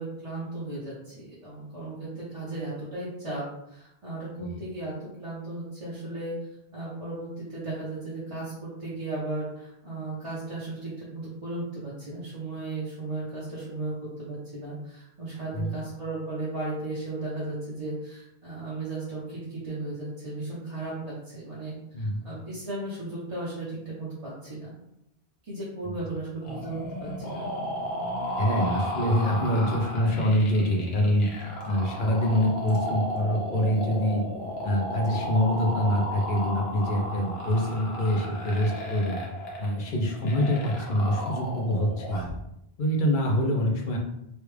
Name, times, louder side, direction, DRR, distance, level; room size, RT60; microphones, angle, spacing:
voice 1, 0.0-3.4 3.7-4.9 5.2-6.3 6.7-24.7 25.5-27.4, right 2 dB, 35° right, -9 dB, 0.8 m, -35 dB
voice 2, 21.9-22.2 25.8-25.9 28.4-31.3 31.7-34.2 34.6-39.2 39.6-42.3 42.8-44.0, equal, 55° left, 0 dB, 0.8 m, -25 dB
sound 1, 26.4-42.4, equal, 75° left, 1.1 m, -34 dB
3.2 x 2.3 x 3.2 m, 0.80 s
omnidirectional pair, 1.1 m